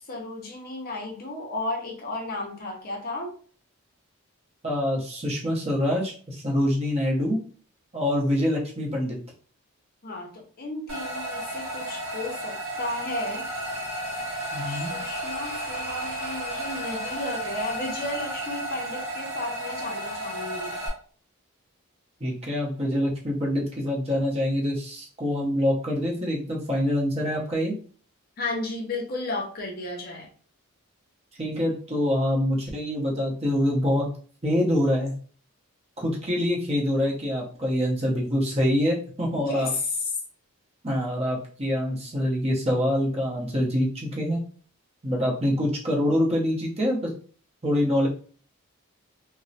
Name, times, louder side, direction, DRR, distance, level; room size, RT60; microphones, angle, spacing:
voice 1, 0.0-3.3 10.0-13.5 14.7-20.9 28.4-30.3 39.3-39.9, left 2 dB, 40° left, 1 dB, 0.6 m, -33 dB
voice 2, 4.6-7.4 7.9-9.2 14.5-15.0 22.2-27.7 31.4-34.1 34.4-35.1 36.0-39.7 40.8-44.4 45.0-47.1 47.6-48.1, left 1 dB, 30° right, -3 dB, 0.7 m, -25 dB
sound 1, 10.9-20.9, right 1 dB, 60° right, 1.0 m, -33 dB
3.0 x 2.0 x 2.7 m, 0.43 s
head